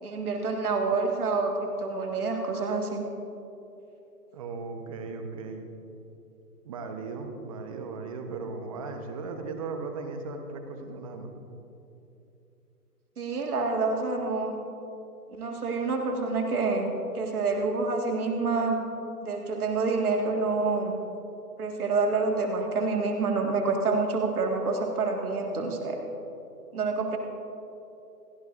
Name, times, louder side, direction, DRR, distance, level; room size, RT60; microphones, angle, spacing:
voice 1, 0.0-3.0 13.2-14.5 15.3-18.8 19.2-20.9 21.6-26.0 26.7-27.2, right 3 dB, 65° right, 2 dB, 1.9 m, -27 dB
voice 2, 4.3-5.7 6.6-11.3, right 4 dB, 20° right, 5 dB, 1.0 m, -37 dB
28.5 x 11.0 x 2.6 m, 2.8 s
hypercardioid pair, 150°, 48 cm